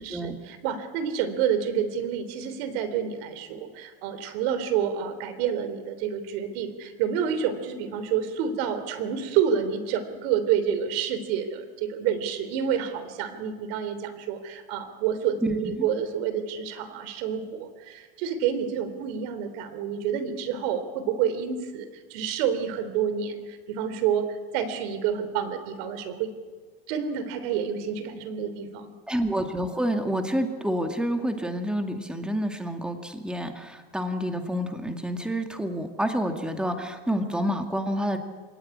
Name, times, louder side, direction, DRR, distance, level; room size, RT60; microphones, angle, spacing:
voice 1, 0.1-24.3 24.5-26.3 26.9-28.9, right 8 dB, 80° right, 11 dB, 3.6 m, -28 dB
voice 2, 15.4-15.9 29.1-38.2, equal, 5° right, 5 dB, 2.3 m, -28 dB
27.5 x 17.5 x 9.8 m, 1.4 s
supercardioid pair, 130°, 30 cm